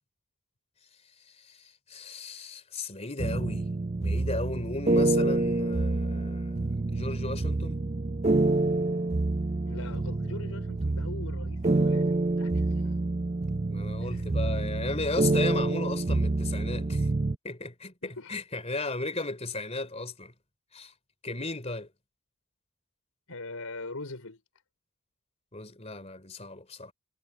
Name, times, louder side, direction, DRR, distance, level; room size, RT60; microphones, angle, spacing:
voice 1, 1.4-3.7 4.0-7.8 13.7-17.1 17.4-20.3 20.7-20.9 21.2-21.9 25.5-26.9, left 2 dB, 30° left, 3.5 m, -35 dB
sound 1, 3.2-17.3, right 2 dB, 30° right, 0.5 m, -27 dB
voice 2, 9.6-13.0 14.0-14.3 18.0-18.4 23.3-24.4, left 2 dB, 75° left, 4.4 m, -42 dB
head